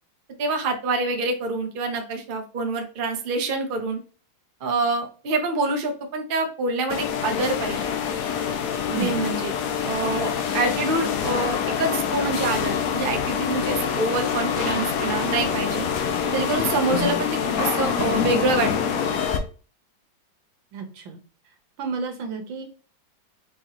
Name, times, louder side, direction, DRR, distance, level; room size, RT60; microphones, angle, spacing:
voice 1, 0.4-4.0 4.6-7.9 8.9-9.5 9.8-15.9 16.3-19.0, right 3 dB, 65° right, 4 dB, 0.5 m, -26 dB
sound 1, 6.9-19.4, left 7 dB, 70° left, 0.8 m, -25 dB
voice 2, 8.9-9.3 20.7-21.2 21.8-22.6, right 4 dB, 80° right, 6 dB, 1.7 m, -31 dB
4.7 x 3.7 x 2.9 m, 0.38 s
omnidirectional pair, 2.1 m